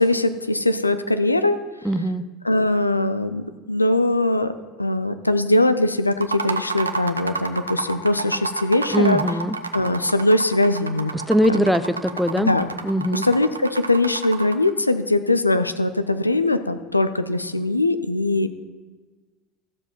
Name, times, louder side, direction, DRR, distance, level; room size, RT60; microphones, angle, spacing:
voice 1, 0.0-1.6 2.4-4.5 4.8-9.4 9.7-11.1 11.5-11.7 12.4-12.7 13.1-18.5, left 2 dB, 90° left, 11 dB, 0.5 m, -21 dB
voice 2, 1.8-2.2 8.9-9.5 11.1-12.5 12.8-13.3, equal, ahead, 11 dB, 0.7 m, -21 dB
sound 1, 6.1-14.7, right 4 dB, 85° right, 0.7 m, -30 dB
14.0 x 7.1 x 4.4 m, 1.4 s
figure-of-eight pair, 75°, 0 cm